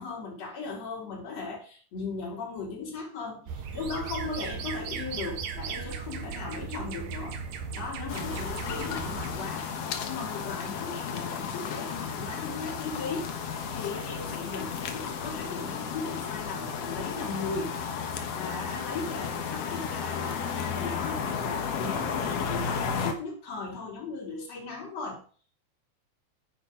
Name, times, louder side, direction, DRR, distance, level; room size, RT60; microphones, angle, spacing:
voice 1, 0.0-7.4 7.7-9.7 10.0-13.3 13.7-17.8 18.4-25.2, left 4 dB, 40° left, -2 dB, 4.7 m, -37 dB
sound 1, 3.5-9.5, right 6 dB, 65° right, 2.7 m, -37 dB
sound 2, 8.1-23.1, left 6 dB, 60° left, 1.7 m, -33 dB
9.6 x 9.6 x 5.3 m, 0.41 s
omnidirectional pair, 4.5 m